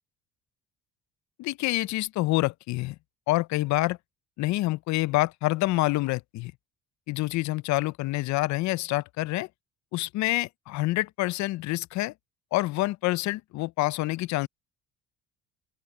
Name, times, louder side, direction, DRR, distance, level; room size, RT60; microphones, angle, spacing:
voice 1, 1.4-3.0 3.3-4.0 4.4-6.5 7.1-9.5 9.9-12.1 12.5-14.5, left 19 dB, 70° left, 0.6 m, -27 dB
open air
cardioid pair, 100°, 30 cm